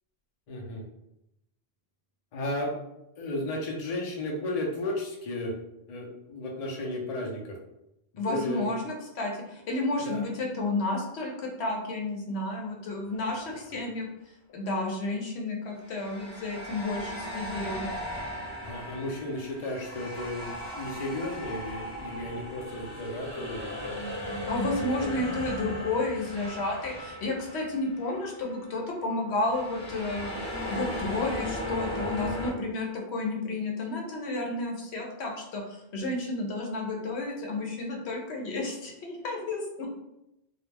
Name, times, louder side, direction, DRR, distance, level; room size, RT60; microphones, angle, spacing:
voice 1, 0.5-0.8 2.3-2.7 3.2-5.5 5.9-7.6 8.1-8.7 10.0-10.2 13.3-13.8 18.6-23.9 25.0-25.2, left 1 dB, 45° left, -1 dB, 0.5 m, -34 dB
voice 2, 8.2-14.1 14.5-17.9 24.5-30.3 30.7-39.9, left 2 dB, 90° left, 0 dB, 0.9 m, -31 dB
sound 1, 13.1-13.4 15.8-28.2 28.4-28.7 29.4-32.5, left 1 dB, 5° left, 0.7 m, -37 dB
2.3 x 2.0 x 3.2 m, 0.86 s
omnidirectional pair, 1.1 m